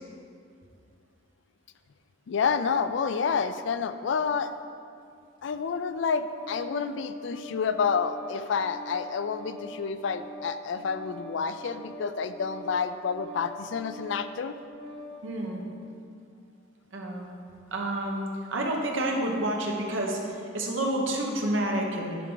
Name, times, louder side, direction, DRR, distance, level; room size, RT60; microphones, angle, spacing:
voice 1, 2.3-4.5 5.4-14.6, left 6 dB, 65° left, 11 dB, 0.3 m, -29 dB
Organ, 5.8-15.2, equal, 25° right, 0.8 m, -44 dB
voice 2, 15.2-15.6 16.9-17.3 17.7-22.2, right 1 dB, 70° right, 0 dB, 1.1 m, -29 dB
11.0 x 4.6 x 3.9 m, 2.4 s
head